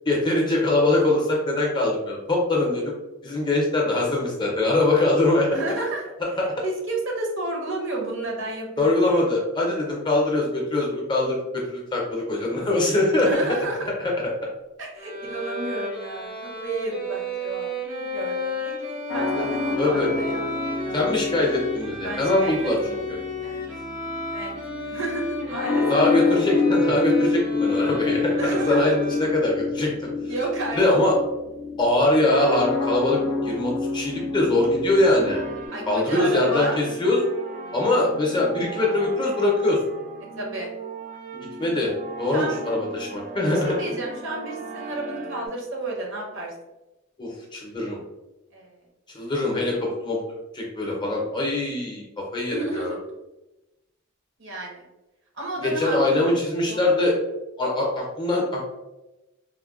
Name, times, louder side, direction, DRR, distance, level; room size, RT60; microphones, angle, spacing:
voice 1, 0.1-2.9 3.2-5.5 8.8-13.3 14.0-14.1 19.4-19.5 19.8-20.1 20.9-22.8 25.9-30.1 30.8-31.2 31.8-35.4 35.9-37.2 37.7-39.8 41.3-41.9 42.2-43.7 47.2-48.0 49.1-50.2 50.5-52.0 52.3-52.9 55.6-57.2 57.6-58.6, left 2 dB, 20° left, -2 dB, 0.5 m, -22 dB
voice 2, 5.5-6.0 6.4-9.3 13.2-13.9 14.8-21.0 22.0-22.7 23.4-23.6 24.3-24.5 24.9-26.0 28.4-28.9 30.3-30.8 35.7-36.8 40.4-40.7 42.3-42.6 43.5-46.5 48.5-48.8 52.5-52.9 54.4-54.8 55.3-56.3 56.6-56.8, right 2 dB, 60° right, -1 dB, 0.8 m, -31 dB
Bowed string instrument, 15.0-29.6, equal, 80° right, 1.4 m, -32 dB
sound 1, 19.1-35.7, left 4 dB, 85° left, 0.4 m, -28 dB
sound 2, 35.0-45.5, right 4 dB, 35° right, 0.4 m, -38 dB
3.6 x 2.1 x 2.3 m, 0.98 s
head